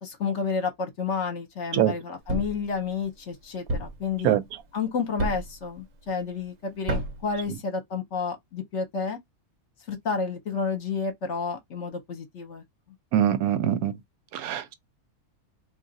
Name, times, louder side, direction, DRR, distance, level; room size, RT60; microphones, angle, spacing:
voice 1, 0.0-4.4 4.7-9.2 9.9-12.6, left 5 dB, 60° left, 1.0 m, -30 dB
Thump thud, 2.3-2.7 3.7-4.1 5.2-5.6 6.9-7.3, right 1 dB, 65° right, 1.1 m, -29 dB
voice 2, 13.1-13.9 14.3-14.7, right 11 dB, 85° right, 1.1 m, -23 dB
2.6 x 2.4 x 3.9 m
omnidirectional pair, 1.5 m